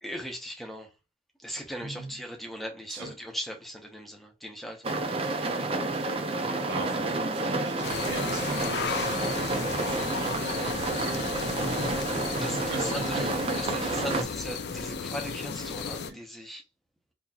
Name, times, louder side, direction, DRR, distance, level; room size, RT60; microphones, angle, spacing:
voice 1, 0.0-0.9 1.4-4.9 11.1-11.2 12.1-13.3 13.6-16.6, equal, ahead, 0.8 m, -39 dB
voice 2, 1.8-2.2 2.9-3.1 6.7-10.5 11.0-13.3 14.1-14.3 16.1-16.2, right 2 dB, 80° right, 1.0 m, -39 dB
sound 1, 4.8-14.2, right 2 dB, 30° right, 0.5 m, -30 dB
sound 2, 7.8-16.1, left 5 dB, 60° left, 0.5 m, -34 dB
4.1 x 2.9 x 2.4 m
head